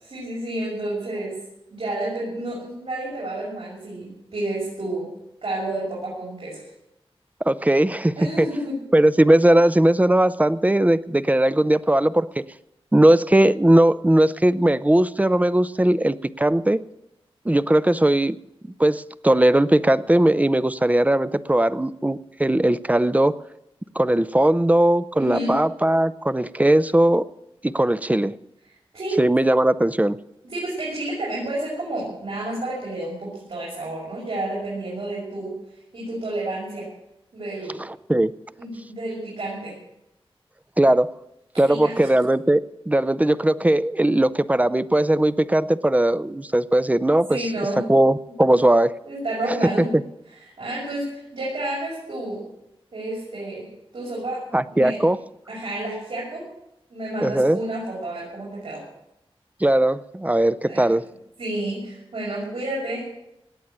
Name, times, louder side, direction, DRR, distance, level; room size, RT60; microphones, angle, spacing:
voice 1, 0.1-1.4 1.7-5.1 5.4-6.6 8.2-8.8 25.2-25.6 28.9-29.2 30.4-35.6 35.9-36.9 37.3-37.8 38.6-39.7 41.6-42.1 47.3-47.9 48.5-48.6 49.0-50.0 50.6-52.5 52.9-53.7 53.9-55.0 55.5-56.5 56.9-58.8 60.6-60.8 61.4-63.1, right 1 dB, 75° right, -6 dB, 6.5 m, -30 dB
voice 2, 7.4-8.5 8.9-12.4 12.9-16.8 17.5-18.4 18.8-23.3 24.0-27.3 27.6-28.4 29.2-30.2 38.1-38.3 40.8-41.1 41.6-47.5 47.9-48.9 49.5-49.9 54.5-55.2 57.2-57.6 59.6-61.0, right 1 dB, 15° right, 15 dB, 0.6 m, -19 dB
18.5 x 8.5 x 9.2 m, 0.85 s
wide cardioid pair, 90°, 10 cm